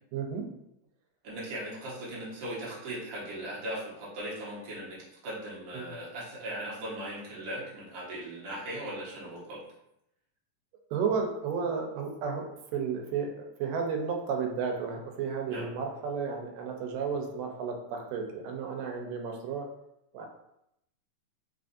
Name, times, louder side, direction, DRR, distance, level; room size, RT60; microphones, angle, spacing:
voice 1, 0.1-0.5 5.7-6.0 10.9-12.5 12.7-19.7 20.1-20.3, right 5 dB, 85° right, 2 dB, 2.2 m, -33 dB
voice 2, 1.2-5.0 5.2-9.6 15.5-15.7, right 1 dB, 55° right, -7 dB, 1.6 m, -38 dB
5.0 x 2.5 x 2.5 m, 0.80 s
omnidirectional pair, 3.8 m